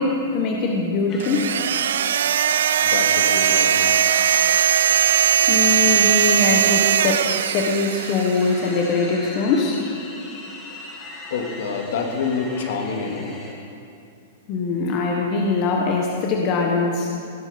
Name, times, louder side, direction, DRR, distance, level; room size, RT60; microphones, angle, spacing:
voice 1, 0.0-1.5 5.5-9.8 14.5-17.1, left 4 dB, 35° left, 0 dB, 1.3 m, -22 dB
sound 1, 1.1-13.5, left 2 dB, 15° left, 2.2 m, -39 dB
sound 2, 1.2-8.6, right 9 dB, 80° right, 0.4 m, -19 dB
voice 2, 2.8-4.0 11.3-13.3, left 5 dB, 65° left, 2 dB, 2.3 m, -27 dB
18.5 x 10.0 x 5.2 m, 2.5 s
supercardioid pair, 160°, 0 cm